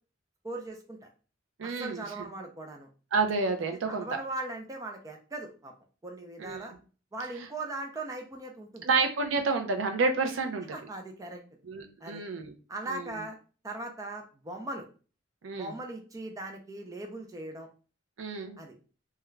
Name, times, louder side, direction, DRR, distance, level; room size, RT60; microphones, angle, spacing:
voice 1, 0.4-1.1 1.6-2.9 3.9-5.7 6.0-6.7 7.1-8.9 10.7-11.4 12.0-12.2 12.7-13.4 13.6-14.9 15.6-17.7 18.6-18.7, right 2 dB, 15° right, 2 dB, 0.4 m, -39 dB
voice 2, 1.6-2.0 3.1-4.1 6.4-6.6 8.8-10.7 11.7-12.5 12.9-13.0 15.4-15.7 18.2-18.6, right 4 dB, 80° right, 5 dB, 0.5 m, -29 dB
2.3 x 2.2 x 3.0 m, 0.36 s
head